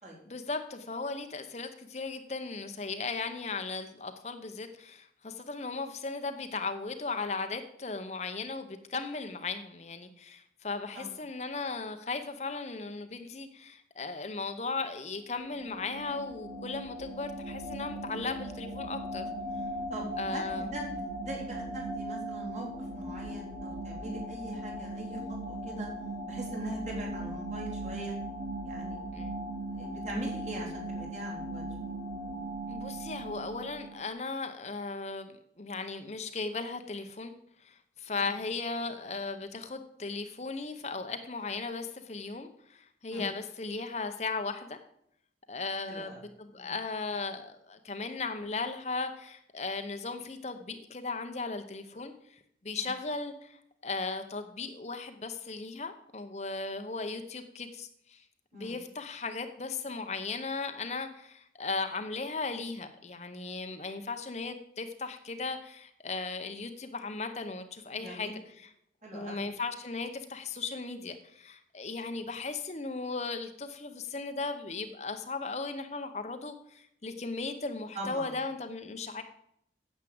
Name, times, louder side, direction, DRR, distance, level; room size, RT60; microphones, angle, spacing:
voice 1, 0.3-19.2 20.2-20.7 29.1-29.4 32.7-37.3 37.6-44.8 45.5-52.4 52.6-58.2 58.5-68.3 68.6-68.7 69.1-79.2, left 4 dB, 40° left, 7 dB, 0.8 m, -37 dB
sound 1, 15.2-34.1, right 1 dB, 90° right, 3.4 m, -38 dB
voice 2, 19.9-25.9 26.3-28.2 28.6-29.0 29.7-31.6 38.2-38.3 43.1-43.3 45.9-46.2 46.5-46.7 52.7-52.9 58.5-58.8 67.9-68.3 69.0-69.5 77.9-78.3, right 1 dB, 40° right, -2 dB, 3.7 m, -41 dB
9.6 x 7.4 x 7.8 m, 0.74 s
head